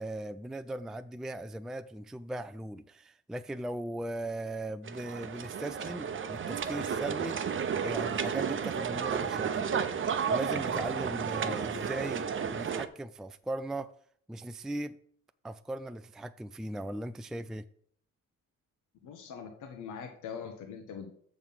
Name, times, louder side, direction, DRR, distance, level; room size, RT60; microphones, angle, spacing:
voice 1, 0.0-9.7 10.3-13.9 14.3-15.0 15.4-17.7, right 1 dB, ahead, 0.3 m, -38 dB
sound 1, 4.8-12.9, right 7 dB, 40° right, 0.8 m, -32 dB
voice 2, 11.4-11.9 19.0-21.1, left 6 dB, 80° left, 1.2 m, -43 dB
7.0 x 6.2 x 5.6 m
cardioid pair, 90°, 30 cm